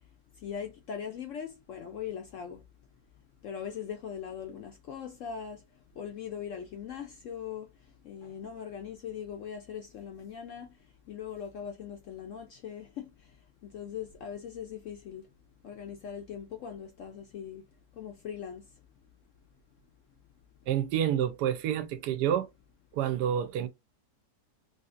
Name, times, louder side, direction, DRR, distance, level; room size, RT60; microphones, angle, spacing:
voice 1, 0.4-2.6 3.4-5.6 6.0-7.7 8.0-10.7 11.1-13.1 13.6-15.2 15.6-17.6 18.0-18.6, left 8 dB, 70° left, 0.7 m, -40 dB
voice 2, 20.7-22.5 22.9-23.7, right 10 dB, 80° right, 1.2 m, -28 dB
3.4 x 2.7 x 2.4 m
omnidirectional pair, 1.8 m